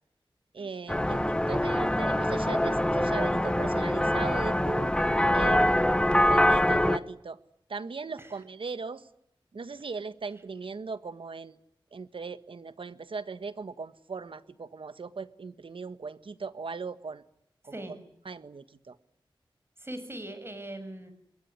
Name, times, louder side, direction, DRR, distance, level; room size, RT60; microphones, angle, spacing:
voice 1, 0.5-4.9 5.3-7.4 7.7-9.1 9.5-11.6 11.9-17.2 17.6-17.8 18.2-19.0, right 4 dB, 75° right, 12 dB, 1.5 m, -38 dB
sound 1, 0.9-7.0, left 1 dB, 10° left, 1.2 m, -24 dB
voice 2, 19.8-21.1, right 1 dB, 25° right, 10 dB, 6.8 m, -41 dB
26.0 x 22.5 x 9.8 m, 0.74 s
wide cardioid pair, 80°, 9 cm